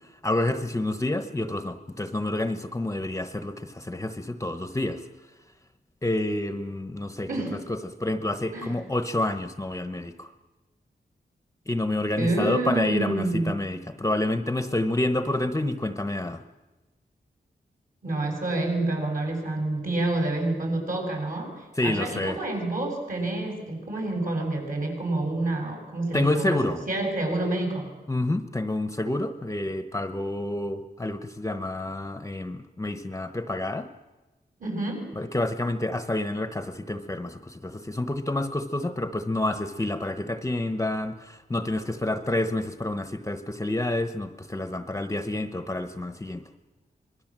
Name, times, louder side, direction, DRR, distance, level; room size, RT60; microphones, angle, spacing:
voice 1, 0.2-5.0 6.0-7.3 7.7-10.3 11.7-16.4 21.8-22.4 26.1-26.8 28.1-33.9 35.2-46.4, left 1 dB, 15° left, 9 dB, 1.0 m, -28 dB
voice 2, 7.3-7.6 8.5-8.8 12.2-13.5 18.0-27.9 34.6-35.1, right 2 dB, 55° right, 2 dB, 7.5 m, -28 dB
26.0 x 21.5 x 7.5 m, 1.1 s
wide cardioid pair, 135°, 17 cm